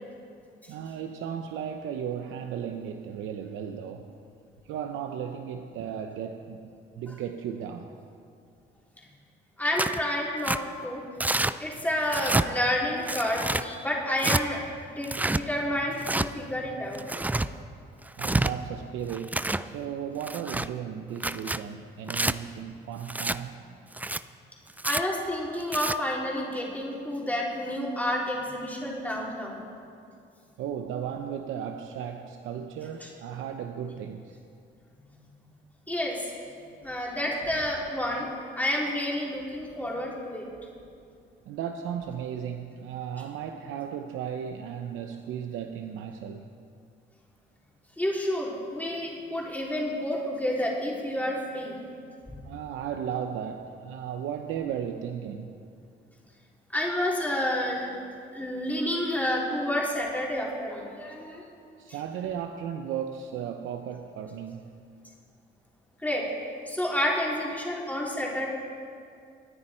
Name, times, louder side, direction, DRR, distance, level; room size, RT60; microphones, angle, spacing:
voice 1, 0.7-4.2 4.6-7.9 18.2-23.8 30.6-34.4 41.4-46.5 52.4-55.6 61.8-64.7, right 8 dB, 90° right, 5 dB, 0.7 m, -35 dB
voice 2, 9.6-11.0 11.6-17.0 24.8-29.6 35.9-36.2 36.8-38.3 38.5-40.5 48.0-51.7 52.4-52.5 56.7-58.0 58.3-61.4 66.0-66.2 66.7-68.5, left 1 dB, 10° left, -4 dB, 3.6 m, -29 dB
Tearing, 9.8-10.0 10.4-10.6 11.2-11.5 12.1-12.5 13.1-13.6 14.2-14.4 15.0-15.4 16.0-16.3 16.9-17.5 18.1-18.5 19.1-19.6 20.2-20.7 21.2-21.6 22.1-22.3 23.1-23.4 23.9-24.2 24.8-25.0 25.6-26.0, right 2 dB, 10° right, 0.4 m, -27 dB
24.0 x 9.6 x 4.4 m, 2.4 s
cardioid pair, 90°, 20 cm